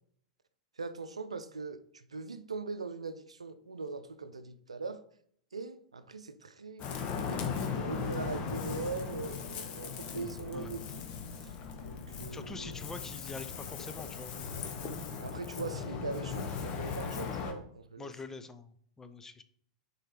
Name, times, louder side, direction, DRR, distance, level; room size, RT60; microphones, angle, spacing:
voice 1, 0.8-5.0 5.5-7.4 7.7-10.9 11.8-12.8 14.8-18.1, right 4 dB, 85° right, 0.5 m, -41 dB
Ocean, 6.8-17.5, left 6 dB, 40° left, 1.3 m, -38 dB
voice 2, 12.3-14.3 18.0-19.4, left 4 dB, 15° left, 0.6 m, -45 dB
6.5 x 4.6 x 4.8 m
figure-of-eight pair, 95°, 3 cm